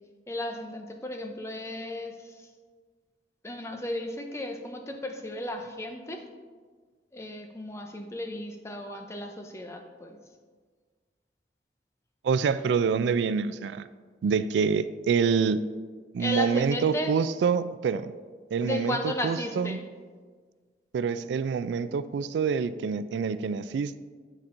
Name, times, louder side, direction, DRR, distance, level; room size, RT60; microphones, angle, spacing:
voice 1, 0.3-2.5 3.4-6.2 7.1-10.2 16.2-17.1 18.6-19.8, left 1 dB, 15° left, 4 dB, 0.5 m, -34 dB
voice 2, 12.2-13.9 14.2-15.6 16.1-18.1 18.5-19.8 20.9-24.0, right 6 dB, 85° right, 14 dB, 0.3 m, -26 dB
12.0 x 4.3 x 2.6 m, 1.5 s
head